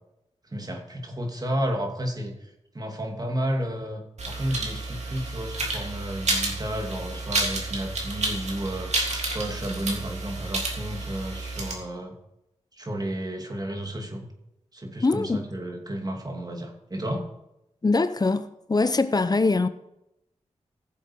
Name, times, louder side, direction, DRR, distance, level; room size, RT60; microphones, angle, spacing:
voice 1, 0.4-8.9 9.3-12.2 12.8-14.3 14.7-17.3, right 1 dB, 35° right, 2.6 m, -32 dB
sound 1, 4.2-11.7, right 2 dB, 75° right, 2.9 m, -30 dB
voice 2, 15.0-15.4 17.8-19.7, left 3 dB, 35° left, 0.8 m, -23 dB
15.5 x 7.4 x 4.7 m
cardioid pair, 55°, 12 cm